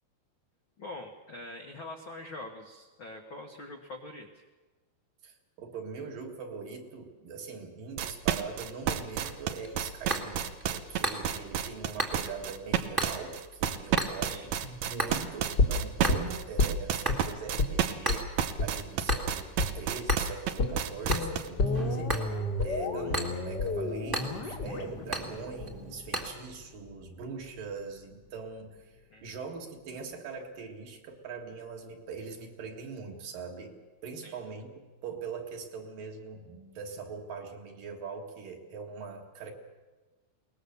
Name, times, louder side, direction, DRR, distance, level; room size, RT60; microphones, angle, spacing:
voice 1, 0.8-4.4 14.3-14.5 29.1-29.3 34.2-34.4, left 2 dB, 60° left, 2 dB, 1.3 m, -44 dB
voice 2, 5.2-29.0 29.2-34.8 35.0-39.5, right 5 dB, 65° right, 2 dB, 3.5 m, -42 dB
sound 1, 8.0-21.5, right 9 dB, 80° right, 1.5 m, -31 dB
sound 2, 9.2-26.3, right 1 dB, 10° right, 1.0 m, -38 dB
sound 3, 15.6-17.2 17.6-17.8 18.1-18.2 18.6-18.7 19.1-19.2 19.6-19.8 20.1-20.2 20.6-26.6 26.9-27.0, left 3 dB, 45° left, 1.5 m, -30 dB
22.0 x 19.5 x 7.0 m, 1.2 s
omnidirectional pair, 4.5 m